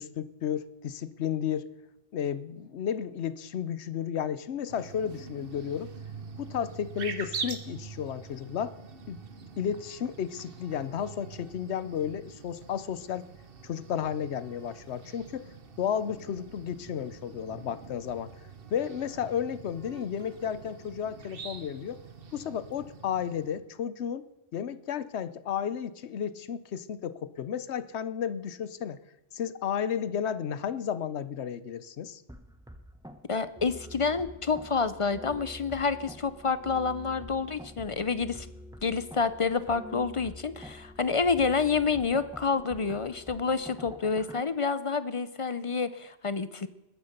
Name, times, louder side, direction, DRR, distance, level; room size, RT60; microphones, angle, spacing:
voice 1, 0.0-1.7 2.1-5.9 6.4-8.7 9.1-9.2 9.6-13.3 13.6-15.5 15.8-18.3 18.7-22.0 22.3-24.2 24.5-29.0 29.3-32.2, left 8 dB, 85° left, 15 dB, 1.0 m, -33 dB
sound 1, 4.7-23.6, right 5 dB, 60° right, 1.3 m, -44 dB
sound 2, 32.3-44.4, equal, 5° right, 0.9 m, -46 dB
voice 2, 33.3-38.5 38.8-46.7, left 5 dB, 35° left, 14 dB, 0.6 m, -28 dB
20.5 x 9.6 x 6.7 m, 0.97 s
omnidirectional pair, 1.1 m